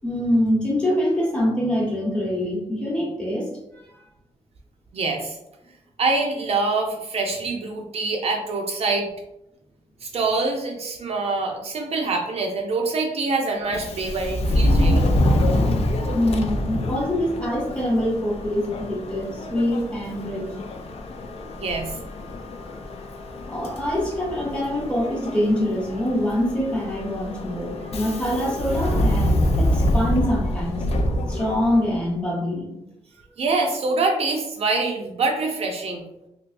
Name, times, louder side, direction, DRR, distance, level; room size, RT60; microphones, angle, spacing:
voice 1, 0.0-4.0 16.1-20.5 23.5-32.7, left 1 dB, 10° left, -4 dB, 0.9 m, -25 dB
voice 2, 4.9-5.4 6.0-9.1 10.0-15.1 21.6-22.0 33.4-36.0, right 3 dB, 55° right, 1 dB, 0.5 m, -25 dB
Subway metro underground, 13.7-32.0, left 1 dB, 55° left, 0.4 m, -25 dB
3.3 x 2.9 x 2.5 m, 0.86 s
wide cardioid pair, 165°, 12 cm